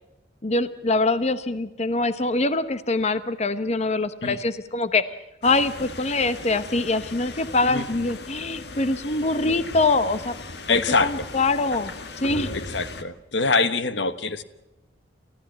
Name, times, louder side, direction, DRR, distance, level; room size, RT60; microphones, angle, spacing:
voice 1, 0.4-5.0 5.4-10.3 11.0-11.9 12.2-12.5, left 3 dB, 40° left, 12 dB, 0.9 m, -24 dB
sound 1, 5.4-13.0, left 2 dB, 65° left, 1.8 m, -37 dB
voice 2, 10.7-11.2 12.5-14.4, left 4 dB, 80° left, 12 dB, 1.3 m, -24 dB
29.0 x 15.0 x 7.4 m, 1.0 s
head